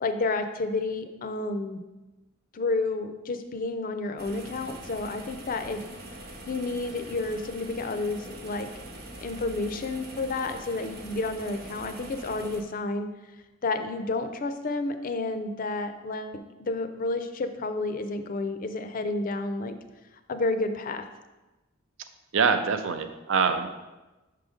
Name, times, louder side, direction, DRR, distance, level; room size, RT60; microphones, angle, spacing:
voice 1, 0.0-1.8 2.5-5.8 6.5-8.7 9.2-13.1 13.6-19.7 20.3-21.1, left 3 dB, 45° left, 8 dB, 0.4 m, -30 dB
sound 1, 4.2-12.6, right 1 dB, 50° right, 1.0 m, -43 dB
voice 2, 22.3-23.7, right 5 dB, 70° right, 8 dB, 0.5 m, -24 dB
5.6 x 3.8 x 5.0 m, 1.1 s
head